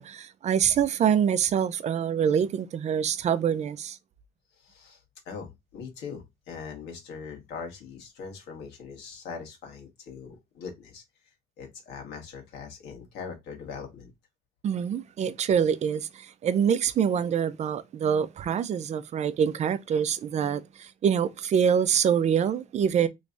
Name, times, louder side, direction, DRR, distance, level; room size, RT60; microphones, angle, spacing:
voice 1, 0.0-4.0 14.6-23.1, right 8 dB, 40° right, 0.5 m, -25 dB
voice 2, 4.6-11.0 11.6-14.1, left 5 dB, 80° left, 1.4 m, -41 dB
3.3 x 3.1 x 2.5 m
cardioid pair, 110°, 17 cm